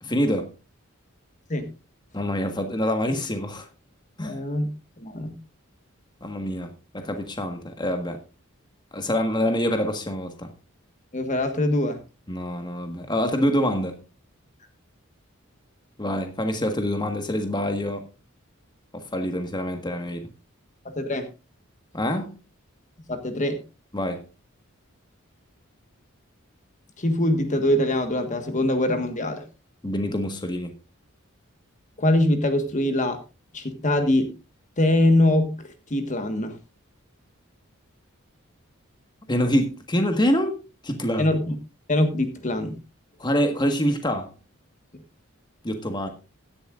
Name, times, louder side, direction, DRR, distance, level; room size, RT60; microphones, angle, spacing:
voice 1, 0.0-0.5 2.1-3.7 4.2-4.4 6.2-8.2 8.9-10.5 12.3-14.0 16.0-18.1 18.9-20.3 21.9-22.3 23.9-24.2 29.8-30.7 39.3-40.6 40.8-41.4 43.2-44.3 45.6-46.1, equal, 20° left, 1.5 m, -26 dB
voice 2, 4.2-4.7 5.0-5.3 11.1-12.0 20.8-21.3 23.1-23.6 27.0-29.4 32.0-33.2 33.5-34.3 34.8-36.6 41.2-41.6 41.9-42.8, left 1 dB, 35° left, 1.5 m, -23 dB
16.0 x 11.5 x 2.5 m
head